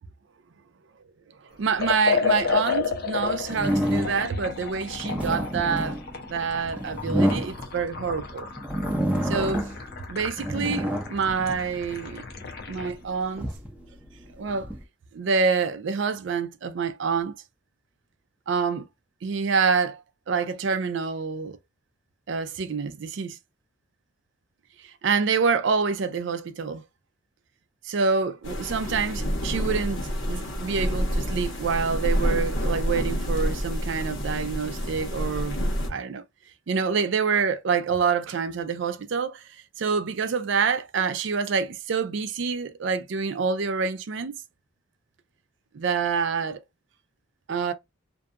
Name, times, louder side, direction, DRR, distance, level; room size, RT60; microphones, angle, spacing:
voice 1, 1.4-6.0 6.3-8.5 9.2-9.7 10.1-12.2 12.7-13.5 14.4-14.7 15.1-17.3 18.5-18.8 19.2-21.6 22.3-23.4 24.8-26.8 27.8-35.6 35.9-36.2 36.7-44.4 45.7-46.6 47.5-47.7, right 5 dB, 60° right, 0.4 m, -27 dB
Liquid, 1.8-13.0, left 5 dB, 50° left, 0.6 m, -32 dB
sound 1, 3.5-4.4 4.9-8.1 8.6-9.9 10.2-12.1 12.7-14.8, equal, 5° right, 0.6 m, -28 dB
sound 2, 28.4-35.9, equal, 65° left, 1.1 m, -28 dB
2.7 x 2.3 x 2.3 m
head